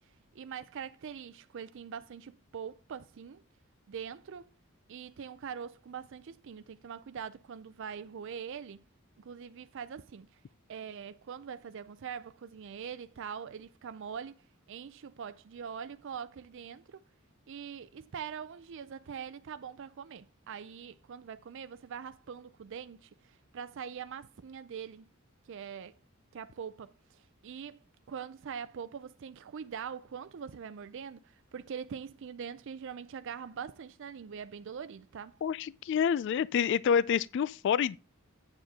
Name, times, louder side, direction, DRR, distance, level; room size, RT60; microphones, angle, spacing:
voice 1, 0.3-3.4 3.9-4.5 4.9-8.8 9.2-10.3 10.7-14.4 14.7-17.0 17.5-25.1 25.5-25.9 26.3-27.8 28.1-35.4, right 7 dB, 60° right, 0.4 m, -43 dB
voice 2, 35.4-38.0, left 7 dB, 60° left, 0.3 m, -28 dB
8.6 x 7.2 x 3.5 m
head